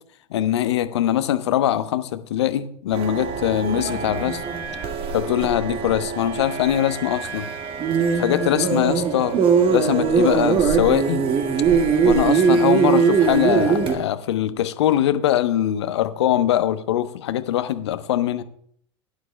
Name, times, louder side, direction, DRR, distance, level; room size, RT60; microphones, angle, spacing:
voice 1, 0.3-4.4 5.1-7.5 8.1-9.3 9.7-11.2 12.0-18.4, left 11 dB, 65° left, 12 dB, 0.9 m, -22 dB
sound 1, 2.9-14.0, right 6 dB, 35° right, 1.7 m, -21 dB
16.0 x 11.5 x 2.2 m, 0.65 s
figure-of-eight pair, 80°, 15 cm